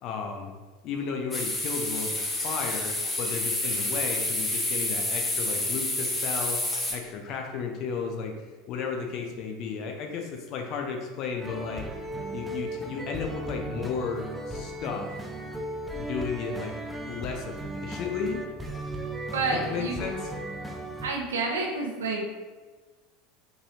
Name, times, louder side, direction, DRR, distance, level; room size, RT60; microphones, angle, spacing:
voice 1, 0.0-0.5 0.8-6.6 6.9-8.3 8.7-11.8 12.3-15.1 15.9-16.7 17.0-18.4 19.5-20.2, left 5 dB, 45° left, 3 dB, 0.6 m, -34 dB
sound 1, 1.3-6.9, left 2 dB, 15° left, 0.9 m, -29 dB
sound 2, 11.4-21.1, right 1 dB, 5° right, 0.5 m, -36 dB
voice 2, 19.3-20.0 21.0-22.3, right 3 dB, 70° right, 0 dB, 0.8 m, -29 dB
5.2 x 3.3 x 2.7 m, 1.3 s
figure-of-eight pair, 75°, 0 cm